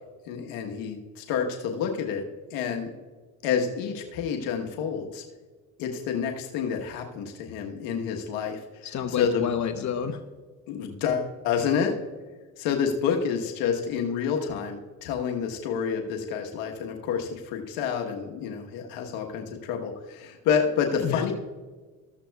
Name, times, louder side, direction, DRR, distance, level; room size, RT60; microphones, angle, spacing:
voice 1, 0.3-2.9 3.4-5.2 5.8-8.6 9.2-9.5 10.7-11.9 12.6-21.3, left 7 dB, 85° left, 2 dB, 1.2 m, -28 dB
voice 2, 8.8-10.2 21.0-21.3, left 8 dB, 55° left, 8 dB, 0.9 m, -29 dB
14.5 x 13.5 x 2.3 m, 1.3 s
supercardioid pair, 75°, 35 cm